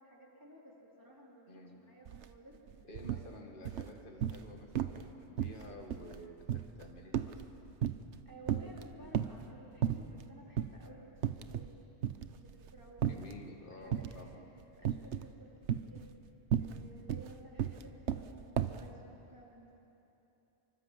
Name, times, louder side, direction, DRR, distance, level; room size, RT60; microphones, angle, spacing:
voice 1, 0.0-2.6 3.3-3.4 8.3-11.7 12.3-13.1 13.7-16.1 16.6-19.9, right 1 dB, 15° right, -3 dB, 4.1 m, -56 dB
voice 2, 1.5-1.8 2.8-7.3 13.0-14.5, left 1 dB, 50° left, 1 dB, 2.3 m, -51 dB
sound 1, 2.1-2.2 2.5-3.3 3.6-4.5 4.7-5.1 5.4-8.2 8.5-9.4 9.8-10.2 10.6-10.7 11.2-11.7 12.0-13.4 13.9-14.3 14.8-15.3 15.6-18.9, right 10 dB, 80° right, 1.1 m, -34 dB
25.5 x 24.0 x 7.7 m, 3.0 s
omnidirectional pair, 1.2 m